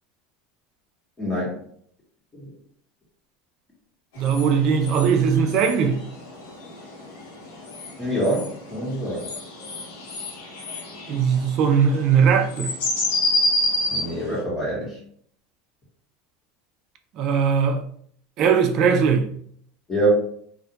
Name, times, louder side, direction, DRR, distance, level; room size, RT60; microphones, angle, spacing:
voice 1, 1.2-1.6 2.3-2.5 8.0-9.3 13.9-15.0 19.9-20.1, right 1 dB, 20° left, 1.1 m, -25 dB
sound 1, 4.2-14.4, left 2 dB, 75° left, 0.8 m, -29 dB
voice 2, 4.2-6.0 11.1-12.7 17.2-17.8 18.4-19.3, right 6 dB, 50° right, 0.4 m, -19 dB
2.4 x 2.1 x 2.8 m
supercardioid pair, 120°, 0 cm